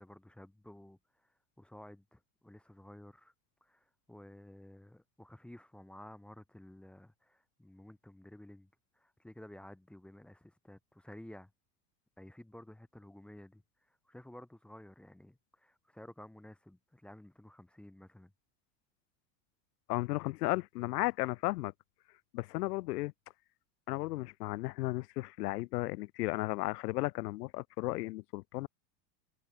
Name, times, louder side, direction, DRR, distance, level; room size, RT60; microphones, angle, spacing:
voice 1, 0.0-3.3 3.6-8.7 8.9-11.5 12.2-18.3, left 1 dB, ahead, 1.4 m, -53 dB
voice 2, 19.9-21.7 22.3-23.1 23.9-28.7, left 20 dB, 70° left, 1.4 m, -34 dB
supercardioid pair, 175°, 50 cm